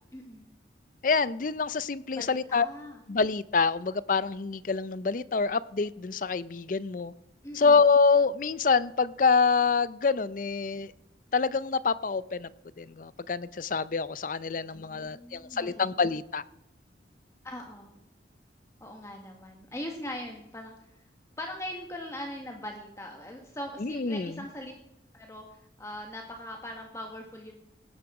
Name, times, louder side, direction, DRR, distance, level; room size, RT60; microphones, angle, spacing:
voice 1, 0.1-0.5 2.1-3.0 7.4-7.8 14.5-15.9 17.4-17.9 18.8-20.7 21.4-24.7 25.1-27.6, left 1 dB, 15° left, 2 dB, 1.4 m, -41 dB
voice 2, 1.0-2.7 3.1-7.1 7.5-10.9 11.3-12.5 12.8-16.4 23.8-24.4, left 4 dB, 45° left, 18 dB, 0.5 m, -26 dB
17.5 x 10.0 x 4.8 m, 0.86 s
head